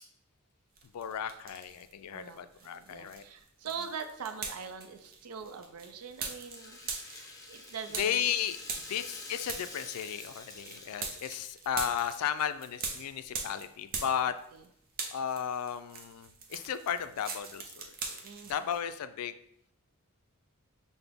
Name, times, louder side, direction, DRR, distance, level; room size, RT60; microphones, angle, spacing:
sound 1, 0.8-1.9 2.3-14.6 14.9-18.8, right 4 dB, 45° right, 0.6 m, -42 dB
voice 1, 0.9-3.2 8.0-14.3 15.1-17.9 18.5-19.3, left 9 dB, 85° left, 11 dB, 0.3 m, -34 dB
voice 2, 2.1-6.8 7.5-8.2 14.5-14.6 18.2-18.6, right 6 dB, 90° right, 8 dB, 0.5 m, -42 dB
Rattle (instrument), 5.4-11.7, left 2 dB, 15° left, 0.6 m, -48 dB
5.8 x 2.1 x 3.5 m, 0.72 s
head